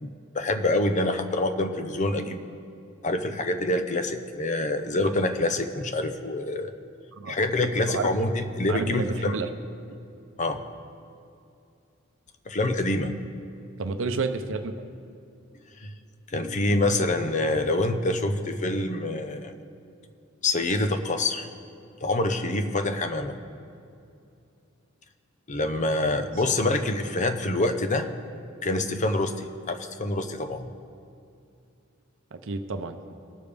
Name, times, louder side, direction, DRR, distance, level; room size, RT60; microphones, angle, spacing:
voice 1, 0.0-2.4 3.0-6.7 7.3-9.4 10.4-10.6 12.5-13.1 15.8-15.9 16.3-19.6 20.4-21.5 22.0-23.4 25.5-28.1 28.6-30.7, left 2 dB, 35° left, 8 dB, 0.6 m, -26 dB
voice 2, 8.7-9.5 13.8-14.7 26.5-26.7 32.3-33.2, right 3 dB, 65° right, 7 dB, 0.7 m, -30 dB
19.5 x 6.8 x 3.4 m, 2.6 s
head